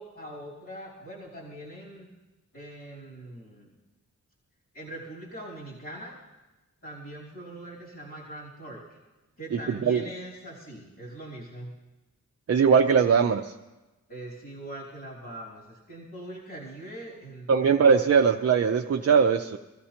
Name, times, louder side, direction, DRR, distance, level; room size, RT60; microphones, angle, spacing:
voice 1, 0.0-2.1 2.5-3.8 4.7-6.2 6.8-9.0 9.4-11.7 14.1-17.9, right 1 dB, 40° left, -4 dB, 3.0 m, -42 dB
voice 2, 9.5-10.0 12.5-13.5 17.5-19.6, right 6 dB, 50° right, 4 dB, 0.5 m, -21 dB
24.0 x 15.0 x 2.9 m, 1.1 s
wide cardioid pair, 140°, 32 cm